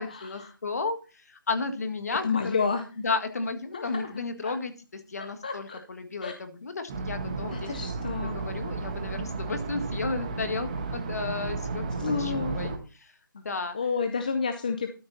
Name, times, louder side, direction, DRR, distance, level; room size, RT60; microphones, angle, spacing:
voice 1, 0.0-2.7 3.0-7.9 8.2-11.8 12.2-13.8, left 4 dB, 45° left, 8 dB, 1.7 m, -33 dB
voice 2, 2.2-2.8 3.7-4.1 4.4-4.5 5.4-5.8 6.2-6.3 7.5-8.4 12.0-12.6 13.7-14.9, left 5 dB, 25° left, 7 dB, 0.6 m, -29 dB
sound 1, 6.9-12.8, right 3 dB, 20° right, 1.3 m, -33 dB
13.0 x 6.6 x 4.1 m, 0.33 s
hypercardioid pair, 175°, 11 cm